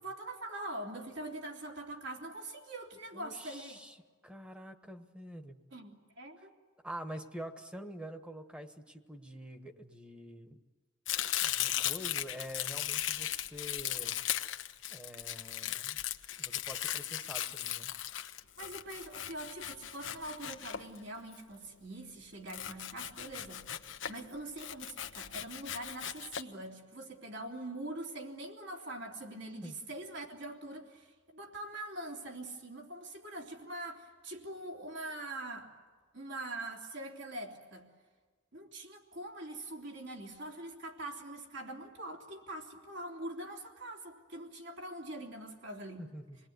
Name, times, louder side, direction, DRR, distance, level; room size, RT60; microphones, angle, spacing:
voice 1, 0.0-3.8 5.7-6.5 18.6-23.7 24.1-35.7 36.1-37.8 38.5-46.0, right 1 dB, 70° right, 1 dB, 3.3 m, -43 dB
voice 2, 3.1-4.0 4.2-5.6 6.4-6.5 6.8-10.6 11.4-14.2 14.9-16.0 16.4-17.9 29.6-29.8 46.0-46.4, equal, 5° right, 7 dB, 1.4 m, -46 dB
Domestic sounds home sounds, 11.1-21.3 22.5-24.2 24.6-26.4, left 11 dB, 90° left, 1.1 m, -37 dB
27.5 x 20.0 x 9.5 m, 1.4 s
head